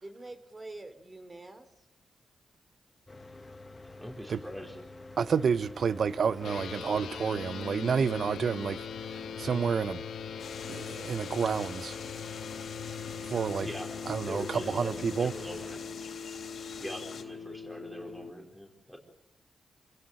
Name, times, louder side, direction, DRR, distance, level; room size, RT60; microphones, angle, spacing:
voice 1, 0.0-1.9, right 2 dB, 25° right, 3.2 m, -46 dB
Mechanical fan, 3.1-15.7, left 2 dB, 20° left, 1.5 m, -47 dB
voice 2, 4.0-4.8 11.6-11.7 13.6-13.9 14.3-16.0 16.8-19.0, equal, 5° right, 4.6 m, -42 dB
voice 3, 5.2-10.0 10.7-11.9 13.2-13.7 14.1-15.3, right 6 dB, 60° right, 0.9 m, -30 dB
sound 1, 6.4-18.3, left 7 dB, 85° left, 1.4 m, -41 dB
sound 2, 10.4-17.2, left 6 dB, 60° left, 3.4 m, -46 dB
27.5 x 16.0 x 9.0 m
cardioid pair, 90°, 0 cm